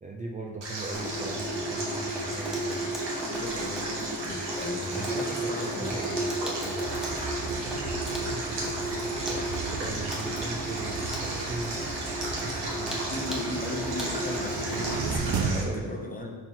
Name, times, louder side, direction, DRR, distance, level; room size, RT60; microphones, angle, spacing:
voice 1, 0.0-2.9 4.9-6.9 7.6-11.8 12.4-13.2 15.5-15.9, right 2 dB, 20° right, 0 dB, 0.4 m, -39 dB
Stream, 0.6-15.6, right 2 dB, 70° right, 1.6 m, -36 dB
Water tap faucet / Sink (filling or washing), 0.9-15.2, right 1 dB, ahead, 0.9 m, -34 dB
voice 2, 3.2-5.9 13.1-16.3, left 2 dB, 20° left, 1 dB, 0.9 m, -37 dB
sound 1, 6.8-15.6, right 5 dB, 55° right, 0.9 m, -36 dB
4.4 x 4.4 x 5.5 m, 1.4 s
cardioid pair, 110°, 43 cm